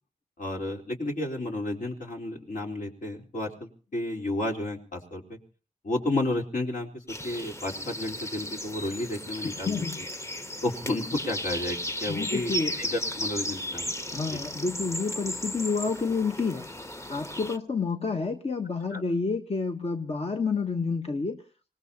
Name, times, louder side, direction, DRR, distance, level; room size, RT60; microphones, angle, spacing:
voice 1, 0.4-5.4 5.8-9.8 10.6-13.9 14.3-14.4 18.9-19.0, left 1 dB, 70° left, 0 dB, 3.9 m, -32 dB
sound 1, 7.1-17.6, left 1 dB, 20° left, 1.1 m, -35 dB
voice 2, 9.4-10.0 12.1-12.8 14.1-16.7 17.1-21.4, left 4 dB, 45° left, 4 dB, 1.2 m, -29 dB
25.5 x 19.0 x 2.9 m, 0.38 s
cardioid pair, 65°, 14 cm